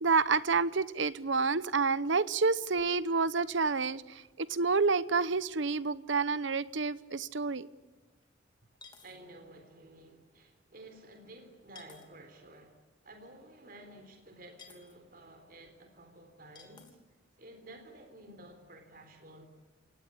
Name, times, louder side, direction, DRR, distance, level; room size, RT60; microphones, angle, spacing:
voice 1, 0.0-7.7, right 4 dB, 70° right, 1.0 m, -29 dB
sound 1, 6.7-6.8 7.3-7.4 8.8-9.2 11.8-12.1 14.6-15.0 16.6-17.0, left 5 dB, 20° left, 3.0 m, -54 dB
voice 2, 9.0-17.0 17.4-19.5, right 1 dB, 45° right, 3.8 m, -53 dB
28.5 x 18.5 x 9.8 m
head